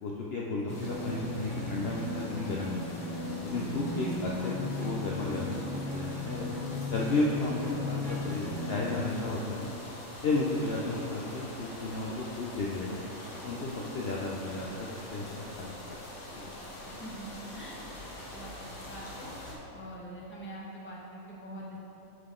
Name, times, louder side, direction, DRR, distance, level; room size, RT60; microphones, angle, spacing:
voice 1, 0.0-3.0 3.4-6.5 6.9-9.7 10.2-13.0 13.4-16.0 16.3-16.5, left 2 dB, 60° left, -3 dB, 0.7 m, -33 dB
sound 1, 0.6-9.0, left 2 dB, 75° right, 2.1 m, -36 dB
sound 2, 0.7-19.6, left 1 dB, 45° left, 1.2 m, -45 dB
voice 2, 16.8-17.8 18.3-18.5 18.9-19.3 19.7-21.8, right 1 dB, 10° left, -5 dB, 0.7 m, -44 dB
7.8 x 3.9 x 3.7 m, 3.0 s
omnidirectional pair, 1.4 m